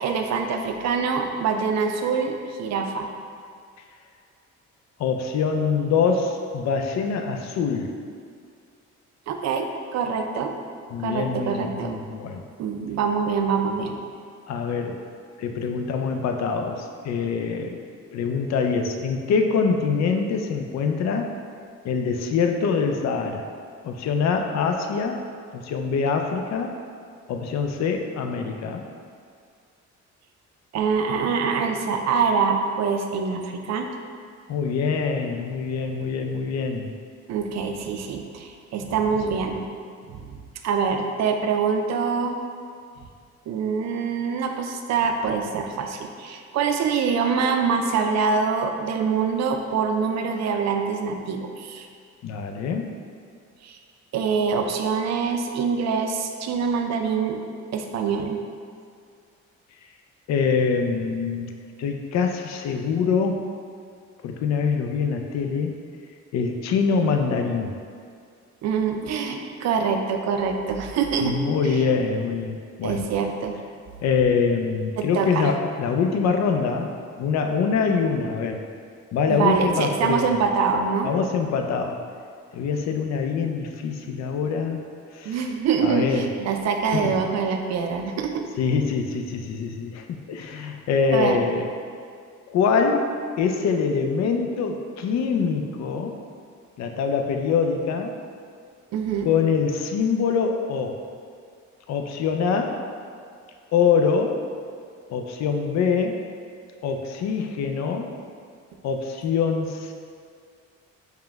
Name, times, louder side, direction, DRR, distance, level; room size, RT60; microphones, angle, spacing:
voice 1, 0.0-3.1 9.3-10.5 11.0-12.0 12.6-14.0 30.7-33.9 37.3-39.6 40.1-42.4 43.5-51.9 53.6-53.8 54.1-57.4 57.7-58.4 68.6-71.4 71.6-71.8 72.8-73.5 75.0-75.5 79.3-81.1 85.3-88.4 91.1-91.4 98.9-99.3, right 5 dB, 60° right, 4 dB, 0.5 m, -25 dB
voice 2, 5.0-7.9 10.9-12.4 14.5-15.0 15.4-17.8 18.1-21.3 21.8-23.5 23.8-25.2 25.5-26.7 27.3-28.8 34.5-36.9 52.2-52.9 60.3-61.5 61.8-63.5 64.2-65.7 66.3-67.7 71.2-73.0 74.0-76.9 77.2-78.6 79.1-80.3 81.0-82.0 82.5-84.8 85.1-85.4 85.8-86.3 86.9-87.1 88.6-91.7 92.5-93.1 93.4-96.2 96.8-98.1 99.2-101.0 101.9-102.8 103.7-104.4 105.1-106.2 106.8-108.1 108.8-109.9, left 5 dB, 60° left, 4 dB, 0.5 m, -24 dB
4.8 x 2.2 x 3.4 m, 2.2 s
cardioid pair, 90°, 30 cm